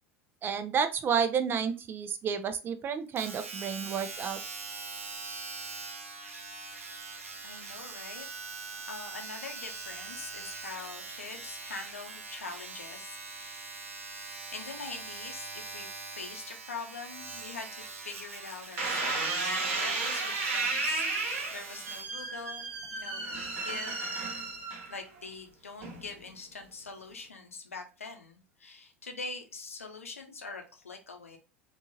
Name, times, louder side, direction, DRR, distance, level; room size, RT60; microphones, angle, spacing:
voice 1, 0.4-4.4, right 7 dB, 30° right, 0.5 m, -30 dB
Domestic sounds home sounds, 3.2-22.1 22.8-22.9, right 4 dB, 75° right, 0.5 m, -43 dB
voice 2, 7.4-8.3 8.9-13.9 14.5-23.3 23.6-24.0 24.9-31.4, left 4 dB, 80° left, 0.6 m, -43 dB
sound 1, 18.8-25.2 25.8-26.3, right 3 dB, 60° right, 1.1 m, -33 dB
3.7 x 2.4 x 2.8 m
figure-of-eight pair, 75°, 7 cm